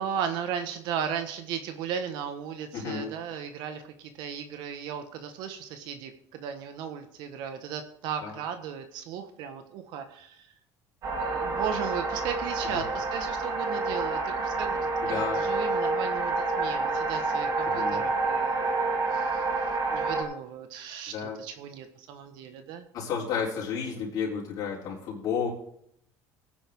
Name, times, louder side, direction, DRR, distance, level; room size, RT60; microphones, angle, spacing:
voice 1, 0.0-10.5 11.2-18.8 19.1-19.4 19.9-22.9, right 8 dB, 70° right, 8 dB, 1.5 m, -36 dB
voice 2, 2.7-3.1 8.2-8.4 12.7-12.8 15.0-15.5 17.7-18.0 21.1-21.4 22.9-25.5, left 6 dB, 55° left, -5 dB, 3.8 m, -31 dB
sound 1, 11.0-20.2, right 3 dB, 50° right, 3.9 m, -28 dB
18.0 x 10.0 x 3.8 m, 0.69 s
cardioid pair, 135°, 8 cm